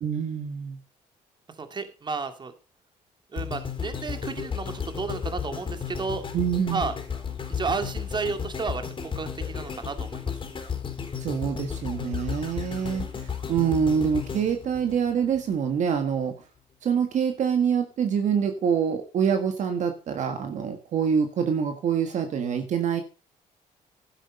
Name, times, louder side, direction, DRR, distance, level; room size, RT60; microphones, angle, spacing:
voice 1, 0.0-0.8 6.3-6.9 11.2-16.3 16.8-23.0, right 7 dB, 60° right, 7 dB, 1.5 m, -26 dB
voice 2, 1.6-2.5 3.3-6.2 6.7-6.9 7.5-10.3, right 4 dB, 35° right, 8 dB, 2.3 m, -32 dB
sound 1, 3.4-15.6 16.1-16.2, left 7 dB, 35° left, 3.6 m, -34 dB
12.0 x 9.9 x 5.3 m, 0.34 s
cardioid pair, 95°, 14 cm